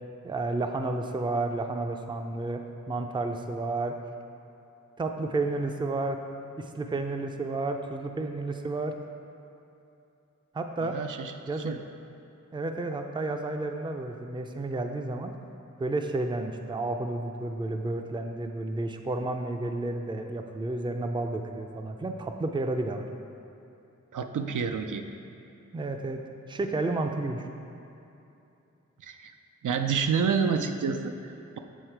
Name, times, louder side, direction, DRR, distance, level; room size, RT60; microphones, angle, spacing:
voice 1, 0.2-2.6 2.9-4.0 5.0-6.2 6.6-8.9 10.5-11.0 11.5-11.7 12.5-15.3 15.8-23.1 25.7-26.2 26.5-27.5, right 2 dB, 15° right, 5 dB, 0.3 m, -31 dB
voice 2, 10.8-11.3 11.6-11.8 24.1-25.0 29.0-29.3 29.6-31.6, right 6 dB, 85° right, 6 dB, 0.5 m, -29 dB
8.2 x 3.9 x 4.5 m, 2.8 s
wide cardioid pair, 105°, 30 cm